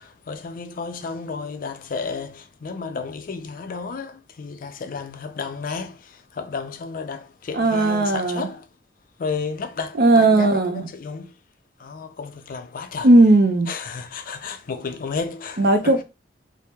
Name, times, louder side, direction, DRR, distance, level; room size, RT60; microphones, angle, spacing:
voice 1, 0.0-8.7 9.2-11.4 11.8-13.1 13.7-16.0, left 5 dB, 50° left, 0.4 m, -32 dB
voice 2, 7.5-8.5 10.0-10.9 13.0-13.7 15.6-16.0, right 2 dB, 55° right, 0.6 m, -16 dB
2.8 x 2.0 x 3.4 m
head